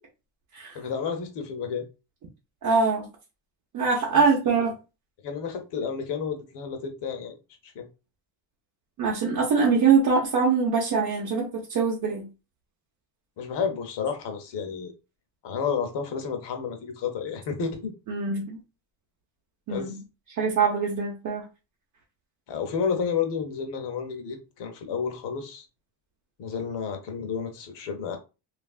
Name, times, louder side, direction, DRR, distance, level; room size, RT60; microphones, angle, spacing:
voice 1, 0.7-1.8 4.1-4.2 5.2-7.4 7.6-7.9 13.4-14.9 15.4-17.9 19.7-20.0 22.5-25.6 26.4-28.2, left 6 dB, 60° left, 0.8 m, -31 dB
voice 2, 2.6-3.1 3.7-4.7 9.0-12.3 18.1-18.6 19.7-20.0 20.4-21.4, right 5 dB, 40° right, 0.7 m, -23 dB
3.1 x 2.5 x 2.3 m
cardioid pair, 165°, 47 cm